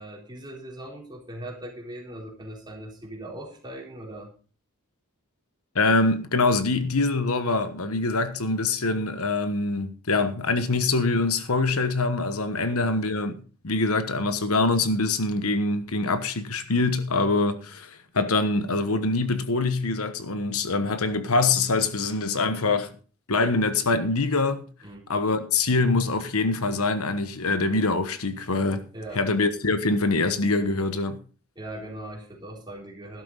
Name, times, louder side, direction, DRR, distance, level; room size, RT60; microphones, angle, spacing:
voice 1, 0.0-4.3 12.5-12.9 24.8-25.0 28.9-29.2 31.6-33.2, right 1 dB, 20° right, 3.7 m, -40 dB
voice 2, 5.7-13.3 13.6-22.9 23.3-24.7 25.1-28.8 29.1-31.2, left 3 dB, 70° left, 1.2 m, -24 dB
12.5 x 12.0 x 4.0 m
head